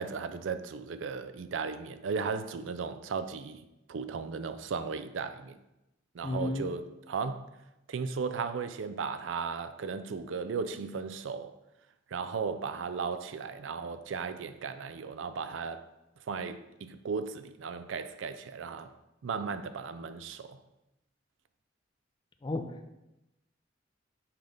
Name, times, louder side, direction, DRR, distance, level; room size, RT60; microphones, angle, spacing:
voice 1, 0.0-3.6 3.9-5.6 6.1-6.8 7.1-7.4 7.9-11.5 12.1-15.9 16.3-18.9 19.2-20.6, right 5 dB, 80° right, 0.4 m, -36 dB
voice 2, 6.2-6.7 22.4-22.9, left 2 dB, 25° left, 0.4 m, -33 dB
5.7 x 5.2 x 3.3 m
head